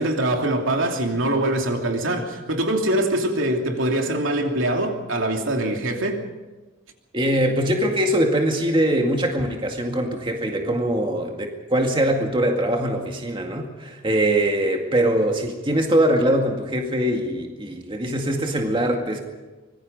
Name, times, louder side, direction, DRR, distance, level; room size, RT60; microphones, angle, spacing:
voice 1, 0.0-6.2, right 1 dB, 80° right, 2.9 m, -23 dB
voice 2, 7.1-19.2, right 1 dB, 25° right, 2.1 m, -22 dB
25.0 x 20.5 x 5.4 m
head